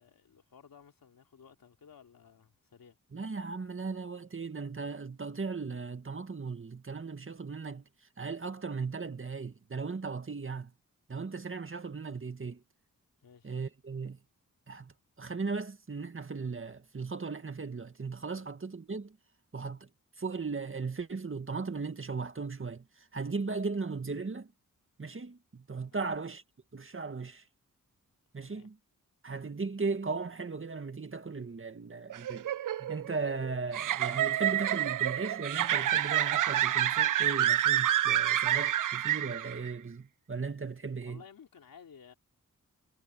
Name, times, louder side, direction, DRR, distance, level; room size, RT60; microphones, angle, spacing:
voice 1, 0.0-3.0 13.2-13.6 18.3-18.5 25.9-26.1 28.4-28.7 41.0-42.1, left 7 dB, 90° left, 3.6 m, -56 dB
voice 2, 3.1-7.8 8.2-10.7 11.1-12.6 13.4-14.2 14.7-19.2 19.5-19.9 20.2-24.5 25.0-26.4 26.7-27.4 28.3-28.8 29.2-41.2, right 4 dB, 40° right, 1.9 m, -37 dB
sound 1, 32.1-39.7, right 12 dB, 65° right, 0.5 m, -28 dB
wide cardioid pair, 80°, 34 cm